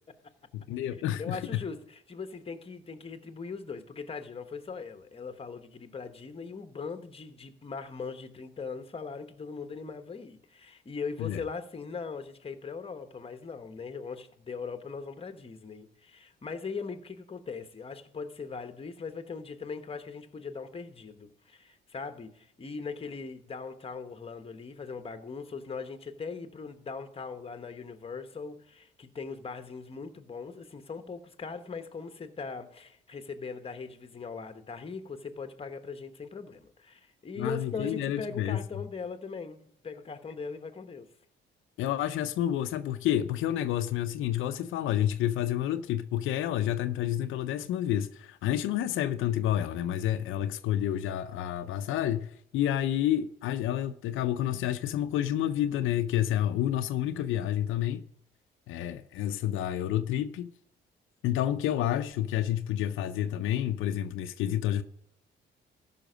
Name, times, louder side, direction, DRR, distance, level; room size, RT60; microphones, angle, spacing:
voice 1, 0.5-1.6 11.2-11.4 37.4-38.6 41.8-58.0 58.7-60.5 61.2-64.8, left 11 dB, 85° left, 0.5 m, -29 dB
voice 2, 1.2-41.1, left 5 dB, 30° left, 1.1 m, -40 dB
14.0 x 5.9 x 5.1 m
cardioid pair, 90°, 20 cm